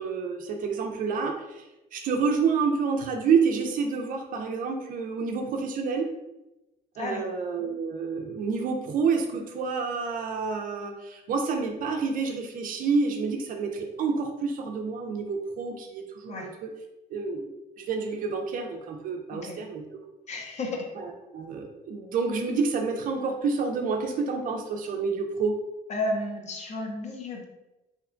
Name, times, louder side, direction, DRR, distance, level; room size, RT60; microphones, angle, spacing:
voice 1, 0.0-1.6 1.9-6.1 7.0-16.7 17.1-17.5 17.8-19.8 21.0-25.5, right 5 dB, 55° right, 4 dB, 0.4 m, -28 dB
voice 2, 20.3-20.9 25.9-27.4, left 2 dB, 40° left, 1 dB, 0.6 m, -32 dB
2.8 x 2.1 x 2.4 m, 0.99 s
cardioid pair, 110°, 17 cm